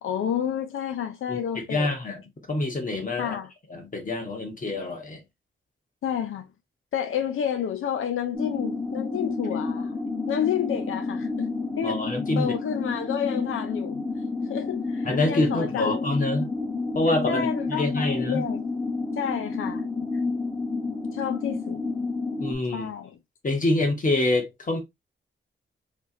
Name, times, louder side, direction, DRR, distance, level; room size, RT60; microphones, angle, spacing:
voice 1, 0.0-1.9 3.2-3.5 6.0-6.5 6.9-10.0 10.3-12.0 12.3-14.0 14.4-16.0 17.3-18.6 19.2-19.8 21.1-21.8 22.7-23.2, left 9 dB, 90° left, 0.5 m, -30 dB
voice 2, 1.7-2.2 2.5-3.4 3.7-5.2 11.8-12.5 15.0-16.5 16.9-18.5 22.4-22.9 23.4-24.8, left 2 dB, 40° left, 1.4 m, -26 dB
sound 1, 8.3-22.5, left 3 dB, 15° left, 1.0 m, -30 dB
3.3 x 3.1 x 2.7 m
cardioid pair, 85°, 20 cm